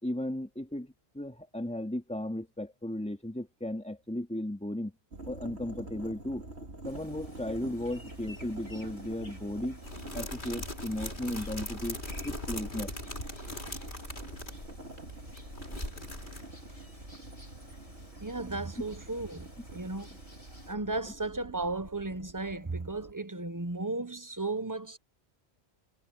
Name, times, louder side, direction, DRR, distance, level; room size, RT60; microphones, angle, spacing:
voice 1, 0.0-4.9 5.3-6.4 6.8-9.8 10.1-12.9, left 1 dB, 5° left, 2.9 m, -35 dB
sound 1, 5.1-23.1, right 2 dB, 80° right, 2.9 m, -46 dB
sound 2, 6.8-20.7, left 1 dB, 30° left, 4.6 m, -56 dB
sound 3, 9.8-16.9 17.1-17.2 17.5-17.7, left 1 dB, 50° left, 4.3 m, -40 dB
voice 2, 18.2-20.1 20.7-25.0, right 2 dB, 20° right, 0.9 m, -35 dB
omnidirectional pair, 1.1 m